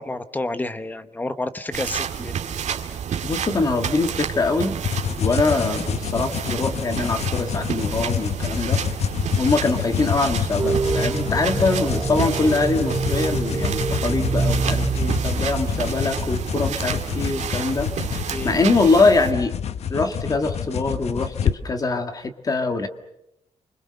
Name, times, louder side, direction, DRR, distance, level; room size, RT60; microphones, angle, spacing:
voice 1, 0.0-2.4 18.3-18.7, left 2 dB, 15° left, 12 dB, 1.0 m, -30 dB
sound 1, 1.7-19.3, right 8 dB, 80° right, 2.2 m, -30 dB
voice 2, 3.2-4.7 5.2-8.8 9.4-17.9 18.4-19.5 19.9-22.9, left 3 dB, 30° left, 7 dB, 1.7 m, -23 dB
sound 2, 4.8-21.6, left 8 dB, 65° left, 0.9 m, -28 dB
sound 3, 10.6-15.9, right 4 dB, 20° right, 1.0 m, -26 dB
28.0 x 25.5 x 6.6 m, 0.84 s
wide cardioid pair, 175°, 12 cm